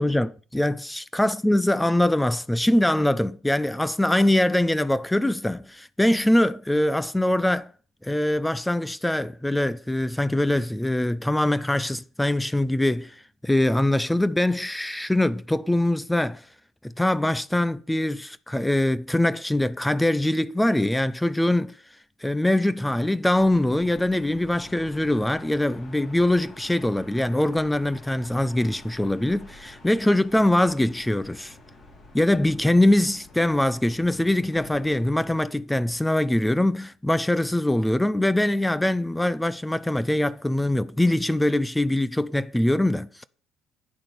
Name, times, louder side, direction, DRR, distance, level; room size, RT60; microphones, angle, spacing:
voice 1, 0.0-7.7 8.0-16.4 16.8-21.7 22.2-31.5 32.1-43.3, left 1 dB, 5° left, 0.5 m, -23 dB
sound 1, 23.4-35.4, left 1 dB, 30° left, 4.5 m, -48 dB
10.5 x 9.4 x 6.7 m
cardioid pair, 100°, 0 cm